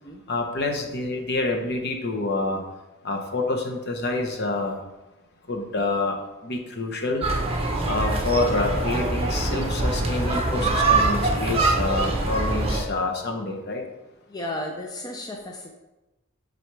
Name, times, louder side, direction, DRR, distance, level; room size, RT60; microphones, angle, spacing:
voice 1, 0.3-2.6 3.0-4.8 5.5-6.2 6.4-7.2 7.9-13.8, left 2 dB, 50° left, 2 dB, 0.9 m, -27 dB
sound 1, 7.2-12.8, right 2 dB, 30° right, 0.9 m, -24 dB
voice 2, 14.3-15.7, left 1 dB, 20° left, 1 dB, 0.5 m, -34 dB
7.7 x 3.9 x 3.4 m, 1.0 s
head